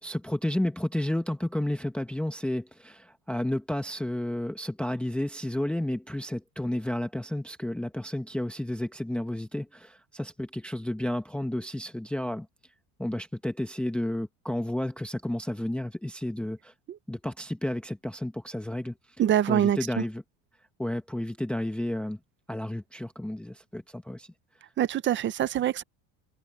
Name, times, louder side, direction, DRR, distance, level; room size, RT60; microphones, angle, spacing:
voice 1, 0.0-12.5 13.0-16.7 17.1-18.9 19.4-20.2 20.8-22.2 22.5-24.3, left 1 dB, ahead, 0.9 m, -31 dB
voice 2, 19.2-19.8 24.8-25.8, right 10 dB, 25° right, 0.5 m, -24 dB
cardioid pair, 160°, 46 cm